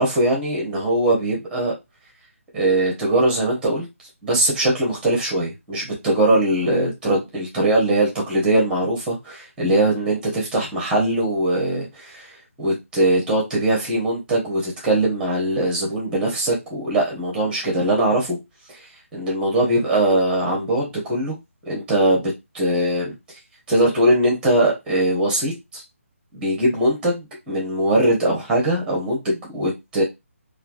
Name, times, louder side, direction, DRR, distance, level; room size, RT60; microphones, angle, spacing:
voice 1, 0.0-1.7 2.5-3.9 4.2-12.3 12.6-18.4 19.1-21.4 21.7-23.1 23.7-25.8 26.3-30.0, right 1 dB, 10° right, -2 dB, 0.9 m, -21 dB
3.2 x 2.4 x 2.3 m, 0.21 s
hypercardioid pair, 165°, 8 cm